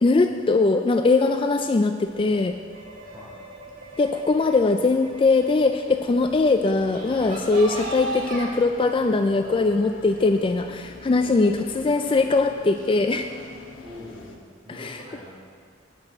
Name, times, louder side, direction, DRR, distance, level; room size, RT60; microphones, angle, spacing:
voice 1, 0.0-2.6 4.0-13.3 14.7-15.0, left 3 dB, 25° left, 6 dB, 0.3 m, -21 dB
sound 1, 2.0-8.4, right 2 dB, 45° right, 1.8 m, -38 dB
sound 2, 6.7-14.4, left 2 dB, 75° left, 1.2 m, -43 dB
voice 2, 11.2-11.8 13.8-15.3, left 1 dB, 25° right, -6 dB, 2.7 m, -44 dB
9.8 x 6.1 x 7.5 m, 2.1 s
head